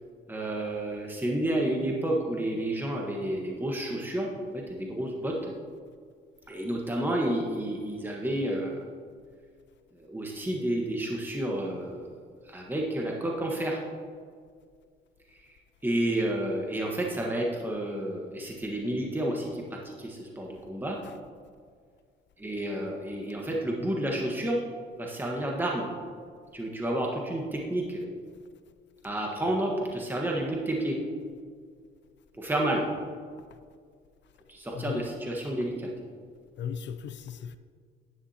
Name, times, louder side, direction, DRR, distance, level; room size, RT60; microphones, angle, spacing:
voice 1, 0.3-5.5 6.5-8.8 10.0-12.1 12.4-13.8 15.3-15.5 15.8-21.0 22.4-24.6 25.0-25.9 26.5-28.0 29.0-31.0 32.4-32.8 34.5-35.9, right 1 dB, 10° right, 1.3 m, -30 dB
voice 2, 36.6-37.6, left 7 dB, 65° left, 0.5 m, -36 dB
11.0 x 9.6 x 2.9 m
cardioid pair, 90°, 20 cm